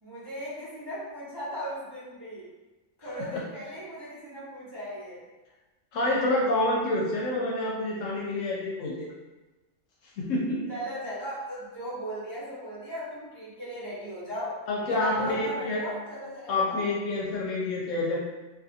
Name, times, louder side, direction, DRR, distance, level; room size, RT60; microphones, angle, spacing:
voice 1, 0.0-2.4 3.0-5.2 10.7-14.6 14.9-16.8, equal, 20° right, -11 dB, 0.7 m, -37 dB
voice 2, 3.0-3.4 5.9-9.1 10.2-10.7 14.7-15.8 16.5-18.2, left 2 dB, 70° left, -3 dB, 0.9 m, -28 dB
2.5 x 2.5 x 2.7 m, 1.1 s
omnidirectional pair, 1.5 m